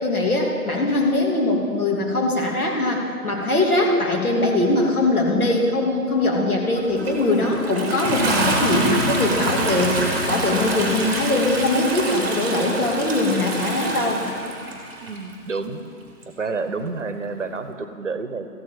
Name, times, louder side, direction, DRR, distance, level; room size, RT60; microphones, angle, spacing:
voice 1, 0.0-14.2, left 2 dB, 65° left, 0 dB, 2.8 m, -21 dB
Toilet flush, 6.8-15.2 16.2-16.3, right 1 dB, 10° right, 1.2 m, -25 dB
voice 2, 15.0-15.8 16.3-18.5, right 4 dB, 50° right, 10 dB, 0.9 m, -29 dB
14.0 x 7.6 x 8.9 m, 2.3 s
figure-of-eight pair, 155°, 48 cm